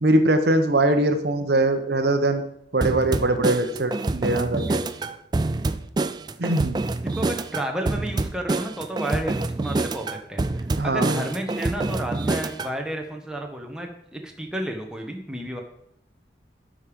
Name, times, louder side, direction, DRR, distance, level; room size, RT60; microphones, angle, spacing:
voice 1, 0.0-2.4 2.7-4.8 6.4-6.8 10.8-11.2, right 2 dB, 60° right, 8 dB, 0.9 m, -22 dB
sound 1, 2.8-12.7, right 2 dB, 25° right, 0.3 m, -26 dB
voice 2, 7.1-15.6, right 1 dB, 5° right, 1 dB, 1.1 m, -32 dB
12.0 x 5.1 x 5.2 m, 0.74 s
head